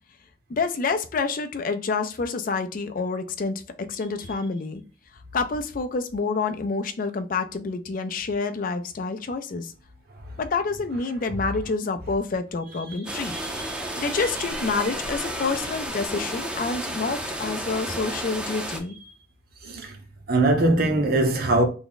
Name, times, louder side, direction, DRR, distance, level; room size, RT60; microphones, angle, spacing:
voice 1, 0.5-4.8 5.3-9.7 10.4-13.4 14.0-19.0, left 4 dB, 50° left, 0.4 m, -28 dB
voice 2, 12.9-14.1 15.5-15.6 19.6-20.0 20.3-21.6, right 2 dB, 60° right, 0.8 m, -23 dB
sound 1, 13.1-18.8, right 1 dB, 5° right, 0.5 m, -32 dB
3.4 x 2.1 x 3.8 m
head